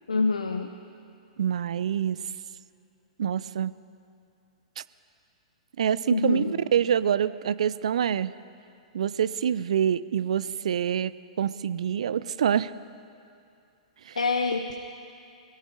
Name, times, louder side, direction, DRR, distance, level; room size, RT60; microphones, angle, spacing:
voice 1, 0.1-0.7 6.1-6.6 14.2-14.7, left 4 dB, 85° left, 5 dB, 0.8 m, -26 dB
voice 2, 1.4-2.2 3.2-3.7 5.8-8.3 8.9-11.1 11.4-12.7 14.1-14.2, right 9 dB, 65° right, 17 dB, 0.5 m, -26 dB
21.5 x 17.0 x 3.8 m, 2.5 s
figure-of-eight pair, 110°, 4 cm